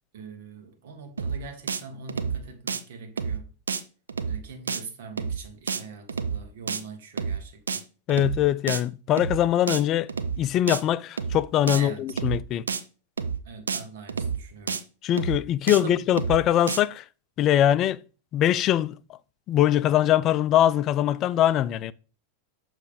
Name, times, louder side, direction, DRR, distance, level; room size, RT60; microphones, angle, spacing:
voice 1, 0.1-3.5 4.3-7.8 11.7-12.1 13.4-14.8 15.7-15.9, right 4 dB, 65° right, 1.5 m, -42 dB
sound 1, 1.2-1.4 1.7-1.8 2.1-2.4 2.7-2.8 3.2-3.4 3.7-3.8 4.1-4.4 4.7-4.8 5.2-5.4 5.7-5.8 6.1-6.4 6.7-6.8 7.2-7.4 7.7-7.8 8.1-8.4 8.7-8.8 9.2-9.4 9.7-9.8 10.1-10.4 10.7-10.8 11.2-11.4 11.7-11.8 12.1-12.4 12.7-12.8 13.2-13.4 13.7-13.8 14.1-14.4 14.7-14.8 15.2-15.4 15.7-15.8 16.1-16.4 16.7-16.8, right 6 dB, 85° right, 0.5 m, -29 dB
voice 2, 8.1-10.1 10.4-12.6 15.0-17.0 17.4-18.0 18.3-19.0 19.5-21.9, left 11 dB, 40° left, 0.4 m, -22 dB
6.7 x 3.2 x 5.1 m
hypercardioid pair, 95°, 0 cm